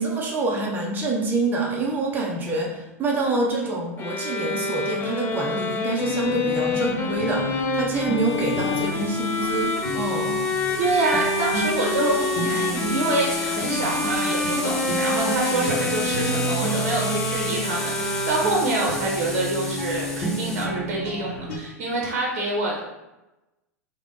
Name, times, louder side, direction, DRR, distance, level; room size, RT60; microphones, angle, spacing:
voice 1, 0.0-10.3, right 3 dB, 20° right, -1 dB, 0.7 m, -26 dB
sound 1, 4.0-18.9, left 3 dB, 30° left, 0.5 m, -27 dB
sound 2, 6.0-21.6, right 1 dB, 60° left, 0.8 m, -32 dB
sound 3, 8.2-20.7, left 1 dB, 5° left, 0.8 m, -34 dB
voice 2, 10.8-22.8, right 2 dB, 60° right, -2 dB, 0.8 m, -26 dB
3.4 x 2.2 x 3.7 m, 0.99 s
hypercardioid pair, 90°, 8 cm